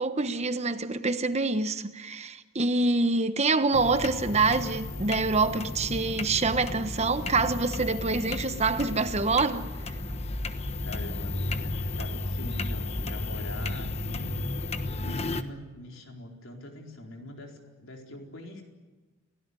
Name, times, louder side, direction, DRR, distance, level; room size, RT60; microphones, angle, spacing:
voice 1, 0.0-9.7, right 3 dB, 30° right, 1.1 m, -26 dB
sound 1, 3.7-15.4, left 2 dB, 30° left, 1.2 m, -33 dB
voice 2, 10.8-14.5 14.9-18.6, left 1 dB, 75° left, 4.4 m, -42 dB
30.0 x 17.0 x 9.8 m
head